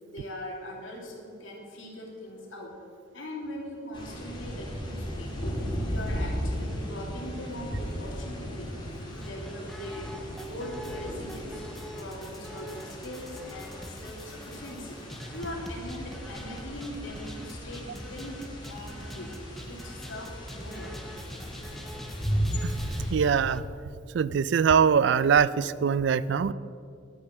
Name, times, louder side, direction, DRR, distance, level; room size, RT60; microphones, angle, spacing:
voice 1, 0.0-2.7 3.1-5.6 5.9-8.7 9.1-10.1 10.4-11.6 11.9-15.0 15.3-21.0, left 1 dB, 80° left, -1 dB, 2.5 m, -41 dB
sound 1, 3.9-23.1, equal, 25° left, 1.9 m, -36 dB
sound 2, 9.2-23.6, equal, ahead, 0.6 m, -43 dB
voice 2, 23.1-23.6 24.1-26.5, right 6 dB, 60° right, 18 dB, 0.3 m, -22 dB
11.0 x 6.6 x 7.1 m, 2.4 s
head